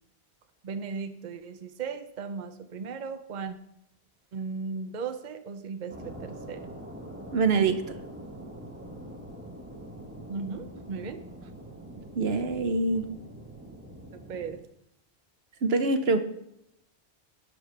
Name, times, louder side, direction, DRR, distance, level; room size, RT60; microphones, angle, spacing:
voice 1, 0.6-3.6 4.3-6.7 10.3-11.2 14.1-14.6, right 5 dB, 50° right, 8 dB, 0.8 m, -36 dB
sound 1, 5.9-14.6, right 1 dB, 10° right, 1.3 m, -44 dB
voice 2, 7.3-7.8 12.2-13.0 15.6-16.2, right 3 dB, 70° right, 8 dB, 1.1 m, -24 dB
11.0 x 5.0 x 6.6 m, 0.80 s
omnidirectional pair, 1.1 m